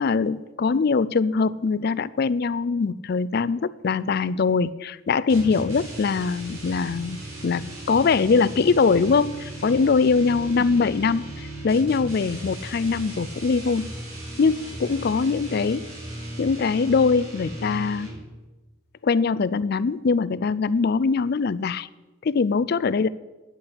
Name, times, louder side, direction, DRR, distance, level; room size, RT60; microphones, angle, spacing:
voice 1, 0.0-13.9 14.4-15.9 16.4-18.1 19.0-21.9 22.2-23.1, left 4 dB, 50° left, 17 dB, 0.4 m, -22 dB
sound 1, 5.3-18.4, right 1 dB, 85° right, 4.2 m, -37 dB
9.9 x 8.7 x 7.9 m, 1.2 s
head